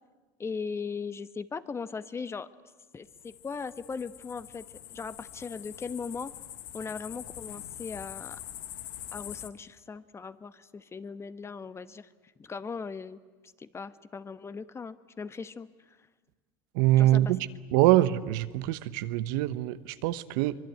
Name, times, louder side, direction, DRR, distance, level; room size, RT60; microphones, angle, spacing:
voice 1, 0.4-2.5 2.9-4.6 4.9-6.3 6.7-8.4 9.1-12.1 12.4-13.2 13.6-16.0 17.0-17.3, left 5 dB, 25° left, 13 dB, 1.2 m, -38 dB
sound 1, 3.1-9.5, left 12 dB, 80° left, 1.6 m, -44 dB
voice 2, 16.7-17.4 17.7-20.5, right 15 dB, 75° right, 14 dB, 1.1 m, -24 dB
24.5 x 22.5 x 9.3 m, 1.3 s
supercardioid pair, 100°, 11 cm